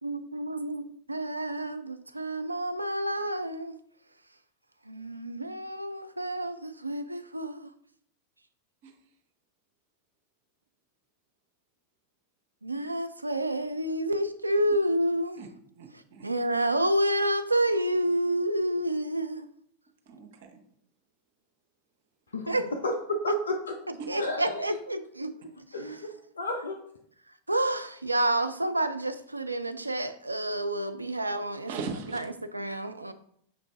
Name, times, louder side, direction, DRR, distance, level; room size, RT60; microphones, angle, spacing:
voice 1, 0.0-3.8 4.9-7.7 12.6-15.4 16.2-19.5 22.5-22.7 24.1-25.3 25.7-26.1 27.5-31.7 32.1-33.1, right 1 dB, 85° right, 9 dB, 0.3 m, -29 dB
voice 2, 15.8-16.3 20.1-20.6 24.0-24.2 31.7-32.2, right 4 dB, 50° right, 3 dB, 0.8 m, -39 dB
voice 3, 22.8-23.6 24.2-24.6 25.7-26.0 26.4-26.8, left 1 dB, 70° left, 5 dB, 0.6 m, -30 dB
6.0 x 2.6 x 3.3 m, 0.68 s
figure-of-eight pair, 90°, 0 cm